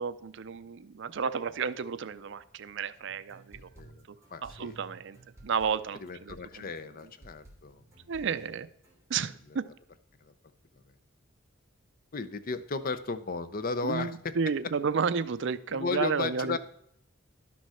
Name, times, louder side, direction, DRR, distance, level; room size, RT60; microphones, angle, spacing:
voice 1, 0.0-3.7 4.4-5.2 5.4-6.7 8.1-8.7 9.1-9.7 13.8-16.6, right 6 dB, 65° right, 14 dB, 0.5 m, -32 dB
sound 1, 3.1-9.0, right 1 dB, 15° right, 2.9 m, -54 dB
voice 2, 4.3-4.8 6.0-7.8 10.2-10.3 12.1-14.3 15.7-16.6, left 4 dB, 45° left, 12 dB, 0.7 m, -34 dB
11.5 x 6.3 x 5.6 m, 0.72 s
head